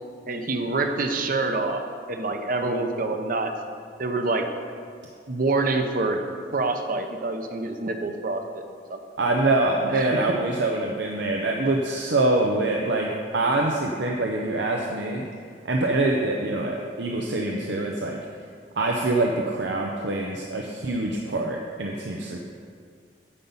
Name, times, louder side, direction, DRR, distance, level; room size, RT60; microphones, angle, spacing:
voice 1, 0.3-3.7 4.0-4.5 5.3-6.2 6.5-8.6 8.9-9.0 9.9-10.3, right 3 dB, 55° right, 6 dB, 0.8 m, -26 dB
voice 2, 9.2-15.2 15.6-18.2 18.8-22.4, right 2 dB, 85° right, 0 dB, 0.8 m, -25 dB
9.8 x 5.4 x 7.2 m, 2.2 s
head